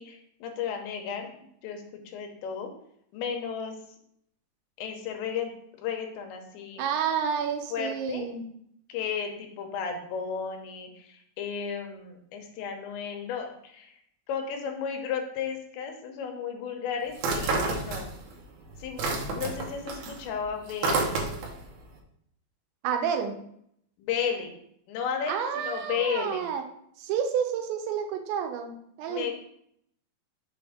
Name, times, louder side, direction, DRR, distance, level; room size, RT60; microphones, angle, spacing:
voice 1, 0.0-2.7 3.1-3.8 4.8-5.5 5.8-6.8 7.7-8.3 8.9-14.0 14.3-18.1 18.8-21.2 24.0-24.5 24.9-26.5 29.1-29.3, left 7 dB, 85° left, 3 dB, 3.2 m, -34 dB
voice 2, 6.8-8.4 22.8-23.3 25.3-26.6 27.0-29.3, right 7 dB, 90° right, 5 dB, 3.0 m, -30 dB
sound 1, 17.2-18.4 18.7-21.6, right 3 dB, 70° right, 2.5 m, -29 dB
6.9 x 3.5 x 4.9 m, 0.71 s
omnidirectional pair, 5.0 m